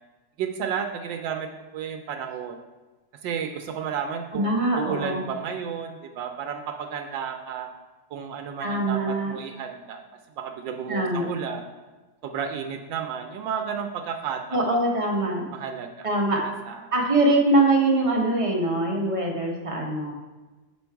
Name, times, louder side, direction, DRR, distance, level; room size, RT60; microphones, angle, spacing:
voice 1, 0.4-2.6 3.2-7.7 8.1-10.0 10.4-11.6 12.2-14.8 15.5-16.1 16.4-16.9, right 7 dB, 80° right, 5 dB, 1.3 m, -32 dB
voice 2, 4.3-5.2 8.6-9.3 10.9-11.3 14.5-15.4 16.0-16.4 16.9-20.1, right 2 dB, 40° right, -1 dB, 0.5 m, -23 dB
6.5 x 5.2 x 4.5 m, 1.2 s
omnidirectional pair, 2.0 m